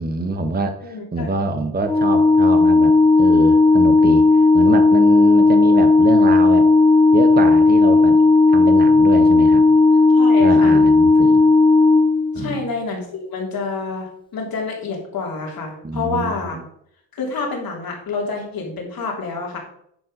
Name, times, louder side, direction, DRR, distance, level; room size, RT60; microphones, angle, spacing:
voice 1, 0.0-4.3 4.5-6.7 7.1-8.2 8.5-9.7 10.4-11.4 12.3-12.6 15.8-16.6, right 3 dB, 25° right, 7 dB, 1.0 m, -25 dB
voice 2, 0.8-1.6 10.1-10.8 12.3-16.6 17.1-19.6, left 4 dB, 60° left, -1 dB, 3.3 m, -28 dB
Organ, 1.8-12.7, left 3 dB, 10° left, 1.6 m, -13 dB
10.0 x 4.4 x 5.3 m, 0.70 s
supercardioid pair, 65°, 39 cm